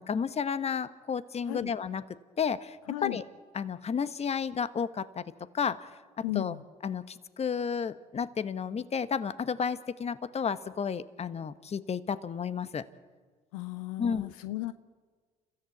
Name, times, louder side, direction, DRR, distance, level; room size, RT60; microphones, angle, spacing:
voice 1, 0.0-2.0 2.4-2.8 3.0-3.2 3.5-5.2 5.5-5.9 6.3-6.5 6.8-12.8 14.0-14.3, left 6 dB, 40° left, 14 dB, 1.2 m, -32 dB
voice 2, 2.9-3.2 6.2-6.6 13.5-14.7, left 16 dB, 85° left, 13 dB, 0.6 m, -35 dB
30.0 x 14.0 x 8.0 m, 1.5 s
hypercardioid pair, 65°, 17 cm